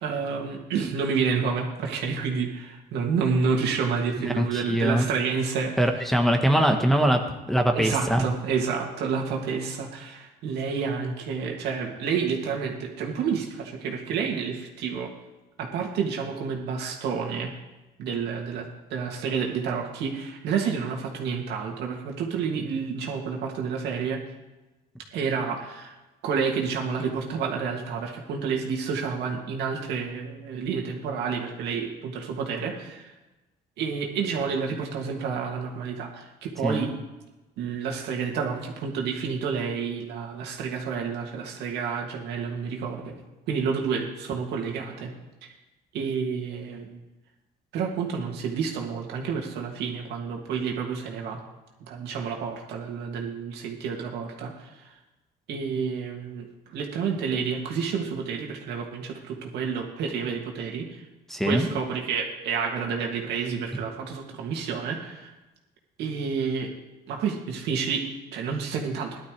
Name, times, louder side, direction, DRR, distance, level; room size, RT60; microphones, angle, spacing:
voice 1, 0.0-6.0 7.7-15.1 15.6-17.5 18.0-24.2 25.1-26.0 26.2-33.1 33.8-36.9 37.6-43.1 43.5-45.1 45.9-47.0 47.7-51.4 51.9-55.0 55.5-61.0 61.4-65.3 66.0-66.7 67.1-68.0 68.3-69.2, right 6 dB, 80° right, 0 dB, 2.4 m, -29 dB
voice 2, 4.2-5.1 5.8-8.2 36.6-36.9 61.3-61.7, right 1 dB, ahead, 3 dB, 1.2 m, -22 dB
16.0 x 12.0 x 3.3 m, 1.1 s
cardioid pair, 110°, 17 cm